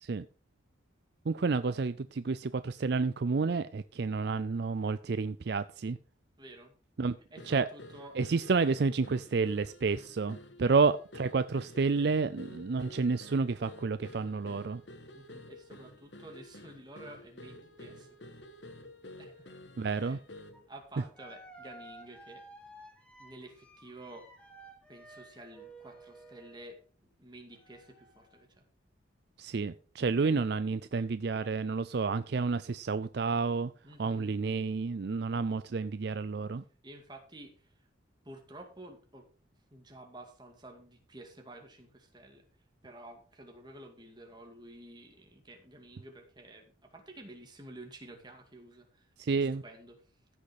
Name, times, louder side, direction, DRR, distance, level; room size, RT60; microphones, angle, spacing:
voice 1, 1.3-6.0 7.0-7.2 7.5-7.7 8.2-14.8 19.8-20.2 29.4-33.7 34.0-36.6 49.2-49.6, right 4 dB, 55° right, 0.4 m, -30 dB
voice 2, 6.4-6.7 7.3-8.2 10.6-10.7 15.1-18.2 19.2-19.5 19.9-20.2 20.7-22.4 23.2-24.3 24.9-28.6 30.2-30.3 33.8-34.4 36.8-37.8 38.2-39.3 39.7-42.5 42.8-50.0, right 1 dB, 20° right, 2.3 m, -51 dB
sound 1, 7.4-20.7, left 1 dB, 65° left, 1.4 m, -50 dB
sound 2, 20.5-20.6 21.2-26.8 27.5-28.4, right 1 dB, 5° left, 2.4 m, -53 dB
15.5 x 6.5 x 4.8 m
head